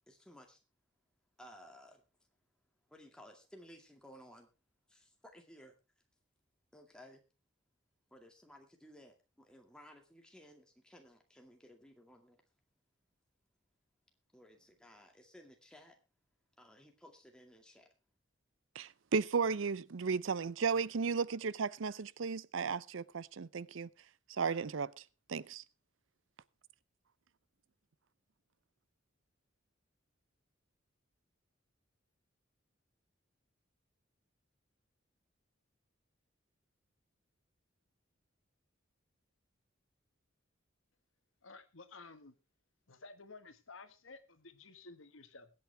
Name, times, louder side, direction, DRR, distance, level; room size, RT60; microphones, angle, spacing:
voice 1, 0.1-0.6 1.4-2.0 2.9-4.5 4.9-5.7 6.7-7.2 8.1-12.4 14.3-16.0 16.6-17.9, equal, 5° left, 2.2 m, -57 dB
voice 2, 18.8-23.9 24.3-24.9 25.3-25.6, right 5 dB, 75° right, 0.5 m, -34 dB
voice 3, 41.4-42.3 42.9-45.5, left 3 dB, 85° left, 1.5 m, -54 dB
21.5 x 8.6 x 3.4 m
head